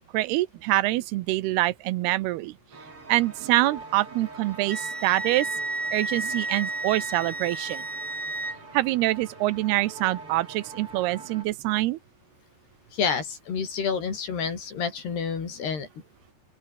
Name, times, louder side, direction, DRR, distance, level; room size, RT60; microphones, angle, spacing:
voice 1, 0.1-2.5 3.1-5.5 5.9-7.8 8.7-12.0, right 18 dB, 85° right, 2.8 m, -25 dB
sound 1, 2.7-11.4, right 3 dB, 35° right, 7.4 m, -44 dB
Wind instrument woodwind instrument, 4.7-8.6, right 2 dB, 15° right, 3.8 m, -32 dB
voice 2, 12.9-15.9, left 6 dB, 80° left, 7.1 m, -29 dB
open air
omnidirectional pair, 4.6 m